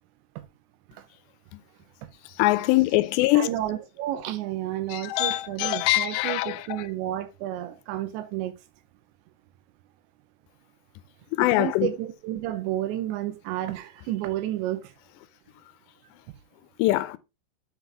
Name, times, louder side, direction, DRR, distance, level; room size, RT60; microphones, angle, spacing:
voice 1, 2.4-3.5 4.9-6.9 11.3-11.9 16.8-17.2, left 17 dB, 85° left, 2.7 m, -23 dB
voice 2, 3.4-8.6 11.4-14.9, right 13 dB, 85° right, 3.2 m, -31 dB
7.5 x 5.9 x 3.4 m
omnidirectional pair, 5.0 m